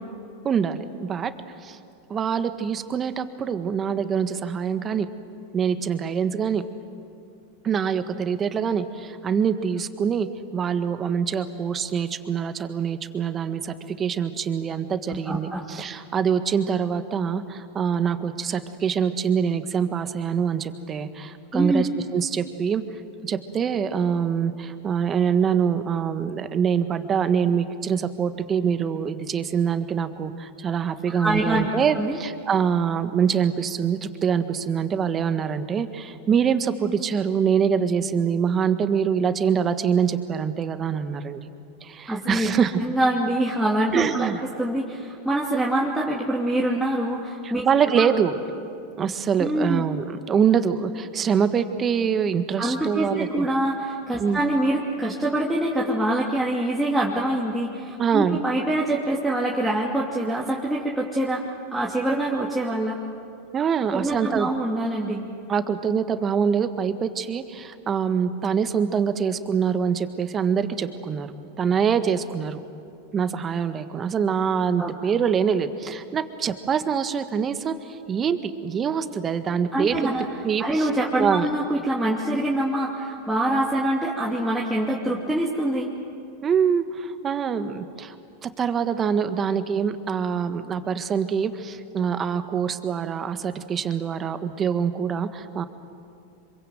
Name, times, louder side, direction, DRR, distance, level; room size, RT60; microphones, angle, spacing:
voice 1, 0.4-1.3 1.6-1.8 2.1-5.1 5.5-6.6 7.6-10.3 10.5-22.8 23.2-41.5 41.8-42.8 43.9-44.4 47.4-48.4 49.0-53.5 54.2-54.4 58.0-58.4 63.5-64.5 65.5-71.3 71.6-72.6 73.1-79.9 80.4-80.9 81.2-81.5 86.4-88.1 88.4-95.6, right 7 dB, 30° right, 9 dB, 1.6 m, -24 dB
voice 2, 15.3-15.7 21.5-21.9 31.1-31.7 31.9-32.2 42.1-42.5 42.8-47.7 48.0-48.1 49.4-49.9 52.6-63.0 63.9-65.2 74.8-74.9 79.7-80.3 80.6-85.9, right 1 dB, 5° right, -5 dB, 2.7 m, -25 dB
26.0 x 23.5 x 7.8 m, 2.5 s
hypercardioid pair, 105°, 0 cm